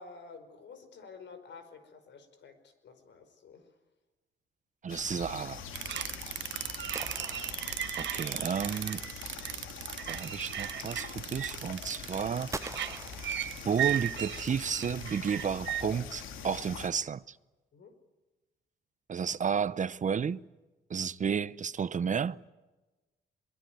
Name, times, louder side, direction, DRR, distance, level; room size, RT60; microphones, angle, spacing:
voice 1, 0.0-3.7 5.9-6.1 17.7-17.9, left 4 dB, 65° left, 5.2 m, -51 dB
voice 2, 4.8-5.6 8.0-9.0 10.1-12.5 13.6-17.4 19.1-20.4 20.9-22.4, right 7 dB, 40° right, 0.7 m, -32 dB
sound 1, 4.9-16.9, left 6 dB, 85° left, 2.9 m, -43 dB
sound 2, 5.7-15.8, right 11 dB, 65° right, 1.1 m, -36 dB
sound 3, 6.9-8.4 12.5-14.1, right 3 dB, 15° right, 1.0 m, -44 dB
23.5 x 22.5 x 9.4 m
cardioid pair, 90°, 20 cm